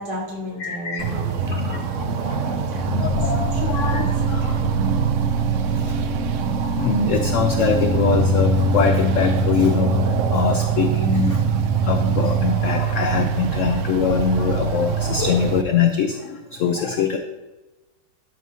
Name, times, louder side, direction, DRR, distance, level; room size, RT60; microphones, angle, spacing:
voice 1, 0.0-4.8, equal, 65° right, -5 dB, 3.1 m, -35 dB
voice 2, 0.6-1.0 1.6-1.8 2.2-2.6 3.0-4.6 5.2-5.4 5.8-6.2 6.6-11.4 11.8-17.2, left 6 dB, 80° left, 6 dB, 0.7 m, -23 dB
sound 1, 1.0-15.6, right 4 dB, 80° right, 0.6 m, -22 dB
sound 2, 2.8-11.8, left 1 dB, 55° left, 1.9 m, -33 dB
12.0 x 6.2 x 2.7 m, 1.1 s
omnidirectional pair, 1.9 m